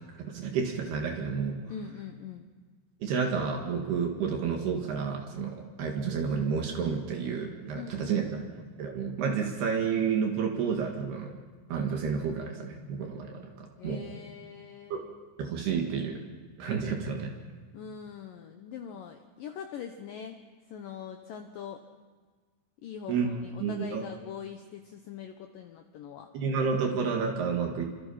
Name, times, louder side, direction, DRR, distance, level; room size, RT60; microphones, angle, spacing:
voice 1, 0.2-1.6 3.0-8.4 8.8-11.4 11.7-14.1 14.9-15.0 15.4-16.2 16.6-17.3 23.1-24.0 26.3-27.8, right 6 dB, 70° right, 2 dB, 3.9 m, -30 dB
voice 2, 1.7-2.5 7.7-8.5 13.8-15.1 17.7-20.4 20.7-21.8 22.8-26.3, left 8 dB, 70° left, 5 dB, 2.4 m, -42 dB
28.5 x 25.5 x 5.8 m, 1.5 s
omnidirectional pair, 5.0 m